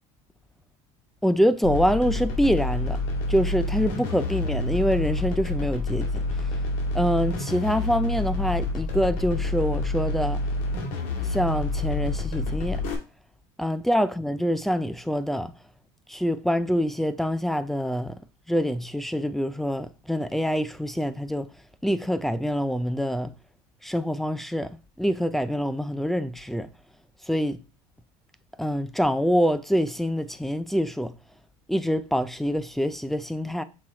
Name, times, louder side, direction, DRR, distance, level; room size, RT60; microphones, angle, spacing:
voice 1, 1.2-3.0 3.3-6.2 6.9-10.4 11.3-12.8 13.6-15.5 16.1-18.2 18.5-21.5 21.8-23.3 23.8-26.7 27.3-27.6 28.6-31.1 31.7-33.6, equal, ahead, 0.4 m, -25 dB
sound 1, 1.6-12.9, left 2 dB, 65° left, 2.1 m, -28 dB
6.4 x 3.4 x 4.3 m
supercardioid pair, 130°, 14 cm